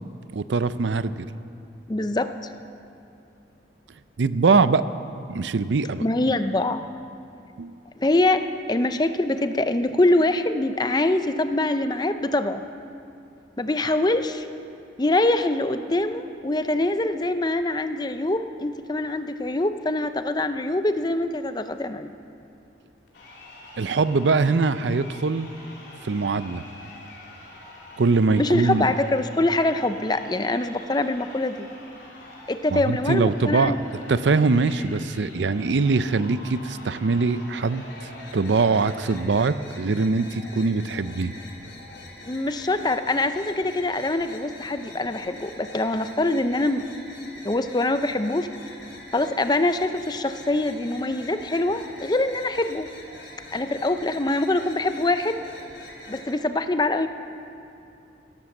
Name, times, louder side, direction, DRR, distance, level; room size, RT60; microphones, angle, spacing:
voice 1, 0.3-1.3 4.2-4.8 5.3-6.1 7.6-7.8 23.8-25.5 26.0-26.6 28.0-28.9 32.7-33.7 34.1-41.3, right 4 dB, 75° right, 14 dB, 0.5 m, -22 dB
voice 2, 1.9-2.3 6.0-6.8 8.0-12.6 13.6-14.4 15.0-22.1 28.4-31.7 32.5-33.8 42.3-46.8 47.4-48.5 49.1-52.9 53.5-55.4 56.1-57.1, left 2 dB, 20° left, 10 dB, 0.6 m, -24 dB
Crowd, 23.1-39.2, left 2 dB, 65° left, 3.2 m, -45 dB
sound 1, 37.6-56.3, left 1 dB, 80° left, 3.3 m, -44 dB
17.0 x 11.5 x 7.2 m, 2.7 s
head